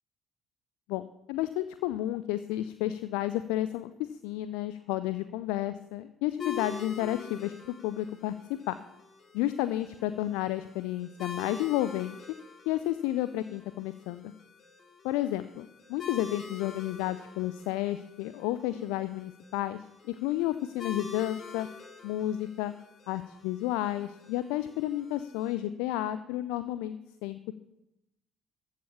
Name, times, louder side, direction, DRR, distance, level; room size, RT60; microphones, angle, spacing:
voice 1, 0.9-8.3 8.7-8.8 9.3-12.2 12.7-14.3 15.0-21.7 22.0-22.7 23.1-27.5, left 14 dB, 65° left, 13 dB, 0.5 m, -32 dB
sound 1, 6.4-25.5, left 5 dB, 40° left, 3.0 m, -46 dB
14.0 x 7.5 x 7.1 m, 0.85 s
figure-of-eight pair, 50°, 0 cm